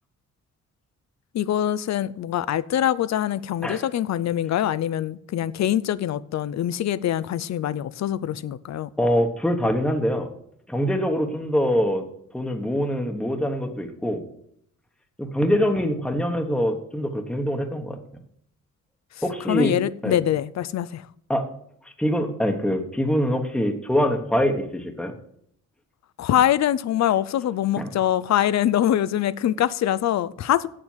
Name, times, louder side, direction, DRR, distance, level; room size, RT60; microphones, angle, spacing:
voice 1, 1.3-8.9 19.5-21.0 26.2-30.7, left 11 dB, 60° left, 0.6 m, -24 dB
voice 2, 9.0-10.3 10.7-12.0 12.3-14.2 15.2-18.0 19.2-19.7 20.0-20.2 21.3-21.4 22.0-25.1 27.8-27.9, equal, 5° left, 1.2 m, -24 dB
8.0 x 7.6 x 7.3 m
cardioid pair, 110°, 30 cm